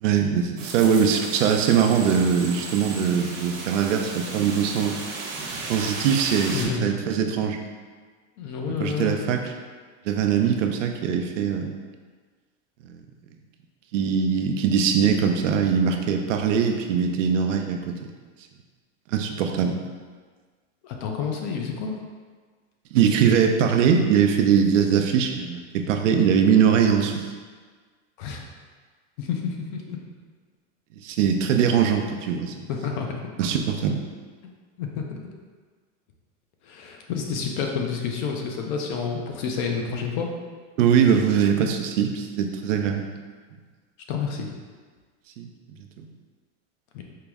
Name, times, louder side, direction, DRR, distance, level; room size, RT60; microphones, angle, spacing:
voice 1, 0.0-5.0 5.7-7.6 8.8-9.4 10.1-11.7 12.9-13.0 13.9-18.1 19.1-19.8 22.9-27.3 31.0-32.5 33.4-34.0 40.8-43.1 45.4-45.5 46.0-46.1, right 7 dB, 90° right, 4 dB, 0.6 m, -21 dB
sound 1, 0.6-6.7, right 3 dB, 40° right, 0.8 m, -35 dB
voice 2, 6.5-6.8 8.4-9.2 20.8-21.9 28.2-28.4 29.2-30.0 32.7-33.3 34.8-35.2 36.6-40.3 44.1-44.5 46.9-47.0, left 6 dB, 40° left, 2 dB, 0.4 m, -29 dB
4.6 x 2.0 x 3.5 m, 1.5 s
supercardioid pair, 155°, 37 cm